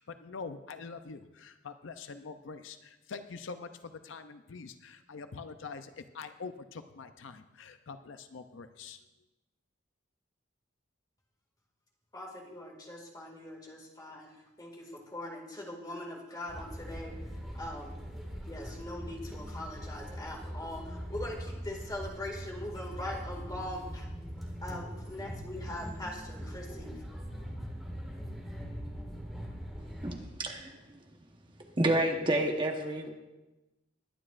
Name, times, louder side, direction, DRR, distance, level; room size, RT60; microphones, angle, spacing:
voice 1, 0.0-9.0, left 4 dB, 70° left, 0.6 m, -45 dB
voice 2, 12.1-17.1 17.5-17.9 18.5-24.1 24.6-27.0, left 1 dB, 20° left, 2.1 m, -41 dB
sound 1, 16.5-30.2, equal, ahead, 1.9 m, -41 dB
voice 3, 29.8-31.0 31.6-33.1, right 1 dB, 25° right, 1.1 m, -30 dB
21.0 x 9.8 x 2.5 m
head